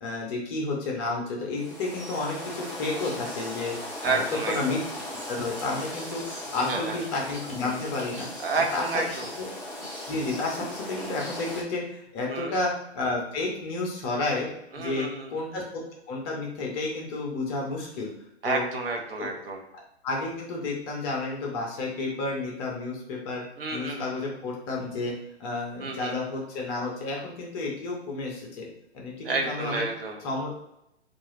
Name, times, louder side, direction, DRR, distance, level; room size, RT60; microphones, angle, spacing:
voice 1, 0.0-3.8 4.0-4.2 4.5-4.8 5.3-8.5 8.7-9.0 9.4-9.5 10.1-14.5 14.8-15.8 16.1-18.1 18.4-18.7 19.2-19.3 20.0-23.4 23.7-25.1 25.4-28.7 28.9-29.9 30.2-30.5, left 3 dB, 20° left, -1 dB, 0.6 m, -31 dB
sound 1, 1.6-11.6, left 1 dB, 5° right, 0.9 m, -38 dB
voice 2, 4.0-4.8 6.6-7.0 8.4-9.3 12.3-12.5 14.7-15.3 18.4-19.6 23.6-24.2 25.8-26.2 29.2-30.2, right 3 dB, 60° right, 2 dB, 0.9 m, -30 dB
3.7 x 2.4 x 3.1 m, 0.80 s
figure-of-eight pair, 130°, 34 cm